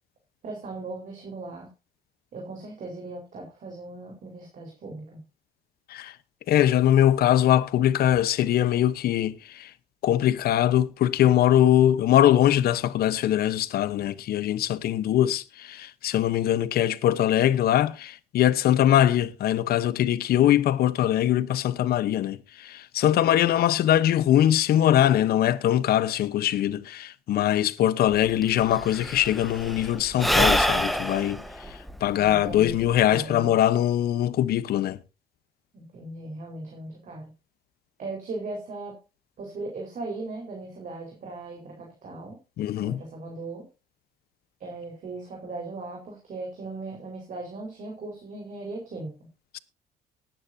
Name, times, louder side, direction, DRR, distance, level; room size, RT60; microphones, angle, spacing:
voice 1, 0.4-1.7 2.3-5.2 32.1-33.5 35.7-37.3 38.0-39.0 39.4-42.4 42.8-43.7 44.6-49.3, right 2 dB, 50° right, 4.8 m, -38 dB
voice 2, 6.5-9.7 10.0-35.0 42.6-43.0 49.5-49.6, left 11 dB, 65° left, 1.1 m, -22 dB
Sigh / Breathing, 28.1-28.2 28.4-33.1, equal, ahead, 1.3 m, -26 dB
19.0 x 9.7 x 2.8 m
cardioid pair, 110°, 17 cm